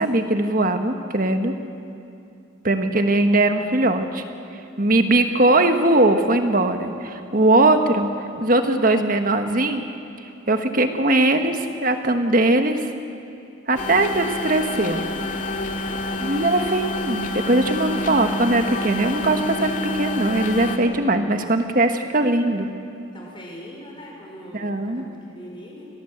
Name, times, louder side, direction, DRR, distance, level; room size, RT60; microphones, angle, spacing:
voice 1, 0.0-1.5 2.6-4.2 4.5-9.8 10.5-12.9 13.7-15.1 16.2-22.7 24.5-25.0, right 2 dB, 45° right, 6 dB, 1.4 m, -20 dB
sound 1, 13.8-20.8, left 1 dB, 40° left, 1.9 m, -28 dB
voice 2, 23.1-25.9, equal, 25° left, -1 dB, 5.0 m, -41 dB
25.5 x 17.5 x 8.1 m, 2.6 s
head